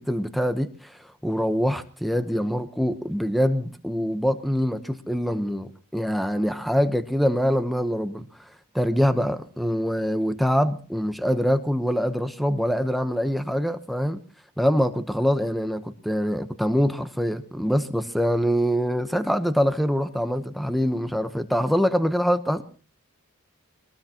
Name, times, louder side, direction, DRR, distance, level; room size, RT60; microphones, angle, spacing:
voice 1, 0.0-8.3 8.7-14.2 14.6-22.6, equal, ahead, 0.9 m, -24 dB
22.5 x 19.5 x 2.9 m
head